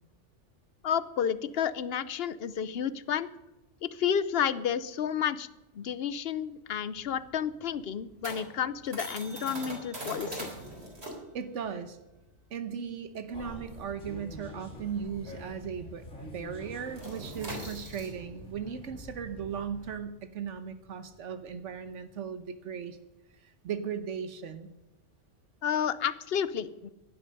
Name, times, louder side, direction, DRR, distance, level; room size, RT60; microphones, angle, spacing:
voice 1, 0.8-3.3 3.8-5.5 5.7-10.5 25.6-26.9, left 8 dB, 60° left, 16 dB, 0.9 m, -31 dB
sound 1, 6.7-15.7 15.9-16.2 16.5-22.2, right 1 dB, 60° right, 3.9 m, -43 dB
voice 2, 11.3-12.0 12.5-23.0 23.3-24.7, right 7 dB, 85° right, 10 dB, 1.2 m, -37 dB
Squeaky Tram interior in Amsterdam, 13.3-19.9, left 1 dB, 85° left, 2.9 m, -46 dB
16.0 x 11.0 x 5.3 m, 1.0 s
omnidirectional pair, 1.2 m